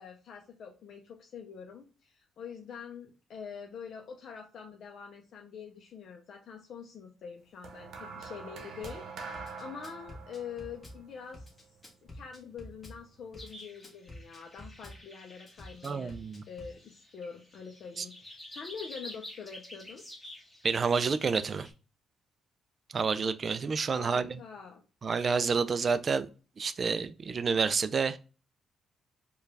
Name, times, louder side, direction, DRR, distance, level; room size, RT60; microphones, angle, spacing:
voice 1, 0.0-11.5 12.1-16.1 16.5-20.0 23.9-24.8, left 6 dB, 65° left, 0.5 m, -45 dB
sound 1, 7.6-12.1 13.0-13.2, right 4 dB, 75° right, 0.9 m, -45 dB
Drum kit / Bass drum, 8.8-9.0 9.3-11.0 11.3-13.0 13.3-15.0 15.5-16.7, left 1 dB, 30° left, 1.3 m, -48 dB
sound 2, 13.4-21.7, left 1 dB, 15° left, 1.7 m, -50 dB
voice 2, 15.8-16.4 18.0-18.1 20.6-21.7 22.9-24.3 25.0-26.3 26.6-28.2, right 5 dB, 40° right, 0.3 m, -29 dB
4.6 x 2.3 x 3.3 m
cardioid pair, 90°, 0 cm